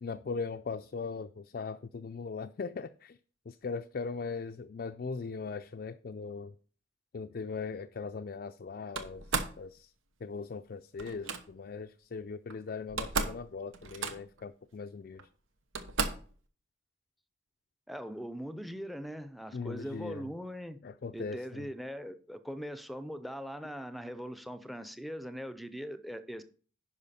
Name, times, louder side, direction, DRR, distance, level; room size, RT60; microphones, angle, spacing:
voice 1, 0.0-3.2 3.5-6.5 7.1-9.2 9.6-9.9 10.2-15.3 19.5-20.3 20.8-21.7, left 4 dB, 50° left, 0.4 m, -39 dB
Slam, 8.9-9.6 11.0-11.4 12.5-12.6 12.8-13.4 13.7-14.4 15.2-15.3 15.7-16.3, right 4 dB, 85° right, 1.0 m, -34 dB
voice 2, 17.9-20.8 21.1-26.4, equal, ahead, 0.6 m, -41 dB
10.5 x 5.6 x 4.2 m
head